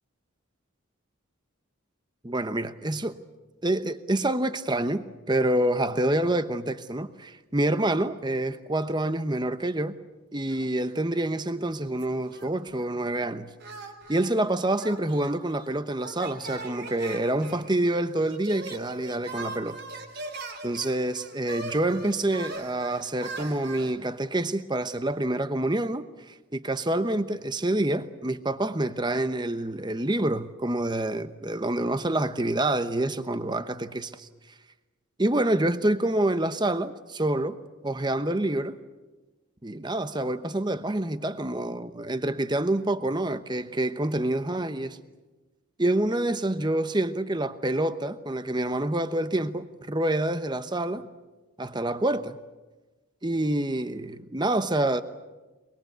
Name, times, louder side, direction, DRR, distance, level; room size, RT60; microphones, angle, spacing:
voice 1, 2.2-3.2 3.6-10.0 10.3-13.5 14.1-19.8 20.6-34.3 35.2-37.6 37.8-38.8 39.6-45.0 45.8-51.1 51.6-52.4 53.2-55.0, right 1 dB, 20° right, 0.9 m, -27 dB
sound 1, 10.5-11.3 11.6-12.9 13.6-23.9, right 2 dB, 50° right, 3.2 m, -41 dB
24.0 x 22.5 x 8.2 m
head